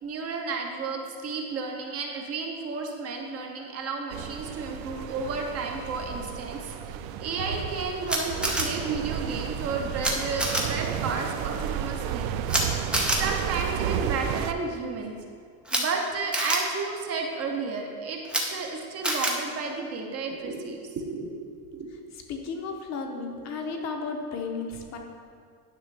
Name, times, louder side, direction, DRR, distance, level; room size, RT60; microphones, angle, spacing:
voice 1, 0.0-12.3 13.2-15.1 15.7-18.2 18.5-21.3 21.7-21.9, right 4 dB, 35° right, 2 dB, 0.7 m, -32 dB
sound 1, 4.1-14.5, right 9 dB, 85° right, 0.6 m, -32 dB
Camera, 8.1-8.6 10.0-10.1 10.4-10.6 12.5-12.6 12.9-13.2 15.6-15.8 16.3-16.6 18.2-18.4 19.0-19.3, right 1 dB, 5° right, 0.4 m, -25 dB
voice 2, 22.3-25.0, left 4 dB, 40° left, 3 dB, 0.8 m, -33 dB
10.0 x 5.9 x 3.3 m, 2.3 s
cardioid pair, 160°, 42 cm